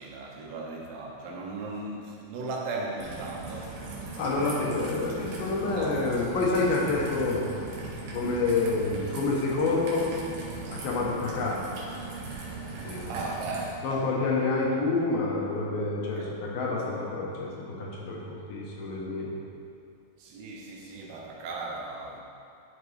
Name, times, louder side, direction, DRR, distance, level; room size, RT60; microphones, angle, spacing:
voice 1, 0.0-3.8 5.6-6.0 13.1-14.2 16.2-16.3 20.2-22.2, right 3 dB, 85° right, -2 dB, 2.9 m, -37 dB
Raindrop / Trickle dribble, 3.0-13.7, right 3 dB, 65° right, 2.0 m, -39 dB
voice 2, 4.2-7.4 8.1-10.1 10.7-11.6 12.8-13.1 13.8-19.3, left 3 dB, 75° left, -3 dB, 2.6 m, -28 dB
10.5 x 5.1 x 3.2 m, 2.5 s
omnidirectional pair, 4.4 m